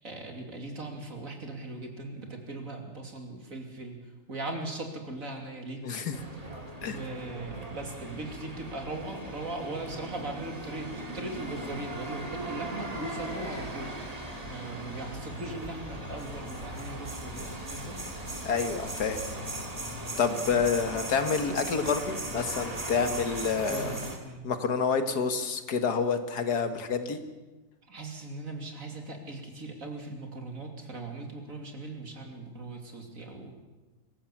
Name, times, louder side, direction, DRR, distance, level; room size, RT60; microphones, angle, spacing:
voice 1, 0.0-4.0 4.3-5.8 6.8-18.0 23.6-24.4 27.9-33.5, right 2 dB, 55° right, 3 dB, 3.3 m, -39 dB
voice 2, 5.8-6.2 6.8-7.0 18.4-19.2 20.2-24.0 24.4-27.2, left 5 dB, 85° left, 8 dB, 2.1 m, -28 dB
sound 1, 6.1-24.2, right 2 dB, 25° right, 2.7 m, -39 dB
sound 2, 14.7-20.0, left 1 dB, 85° right, 6.9 m, -46 dB
24.5 x 15.5 x 7.3 m, 1.2 s
omnidirectional pair, 1.7 m